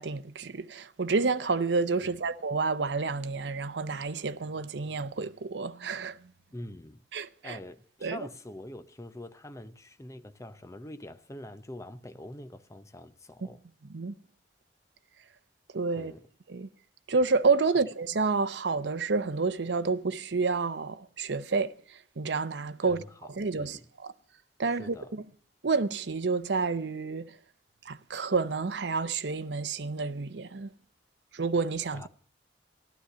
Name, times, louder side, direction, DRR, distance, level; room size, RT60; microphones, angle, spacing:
voice 1, 0.0-6.2 7.1-7.6 8.0-8.2 13.9-14.1 15.7-16.1 16.5-16.7 17.1-23.0 23.3-24.1 24.6-25.2 25.6-27.4 27.8-30.7 31.3-32.0, right 4 dB, 75° right, 0.7 m, -29 dB
voice 2, 6.5-7.0 7.4-13.6 16.0-16.2 22.9-23.3 23.6-23.9 24.6-25.1 31.9-32.1, left 1 dB, 15° left, 0.8 m, -45 dB
14.5 x 11.5 x 6.7 m
head